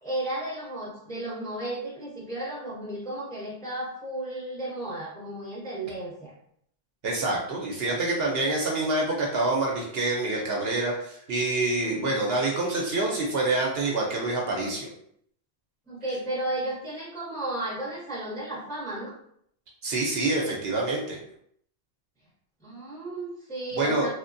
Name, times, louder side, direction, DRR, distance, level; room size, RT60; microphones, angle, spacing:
voice 1, 0.0-6.3 11.7-12.2 15.9-19.1 22.6-24.1, right 1 dB, 5° left, -6 dB, 0.6 m, -34 dB
voice 2, 7.0-14.9 19.8-21.2 23.7-24.1, right 2 dB, 65° right, -2 dB, 0.8 m, -26 dB
3.0 x 2.1 x 2.5 m, 0.69 s
omnidirectional pair, 1.2 m